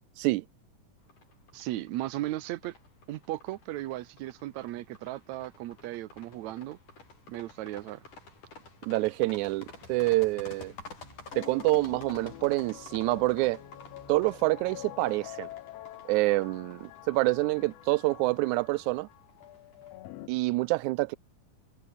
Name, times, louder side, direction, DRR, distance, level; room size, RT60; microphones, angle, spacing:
sound 1, 1.1-19.9, left 3 dB, 60° left, 8.8 m, -51 dB
voice 1, 1.5-2.8 3.1-6.8 7.3-8.0, right 15 dB, 70° right, 1.9 m, -36 dB
voice 2, 8.9-10.7 11.4-13.6 14.1-15.5 16.1-19.1 20.3-21.2, right 21 dB, 85° right, 1.7 m, -27 dB
sound 2, 11.0-16.3, left 1 dB, 10° left, 7.4 m, -58 dB
sound 3, 11.3-20.3, left 15 dB, 90° left, 1.4 m, -46 dB
omnidirectional pair, 3.9 m